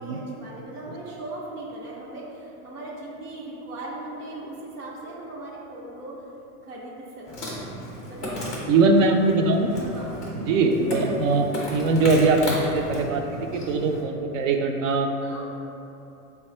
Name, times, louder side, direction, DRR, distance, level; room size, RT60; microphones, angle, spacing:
voice 1, 0.0-6.1 6.6-9.0 9.8-10.2 15.2-15.4, right 2 dB, 85° right, -5 dB, 0.9 m, -39 dB
Insect, 7.3-14.0, left 1 dB, 15° left, 0.4 m, -34 dB
voice 2, 8.7-9.7 10.3-15.1, right 3 dB, 60° right, 4 dB, 0.5 m, -21 dB
3.3 x 2.3 x 4.2 m, 2.8 s
hypercardioid pair, 140°, 46 cm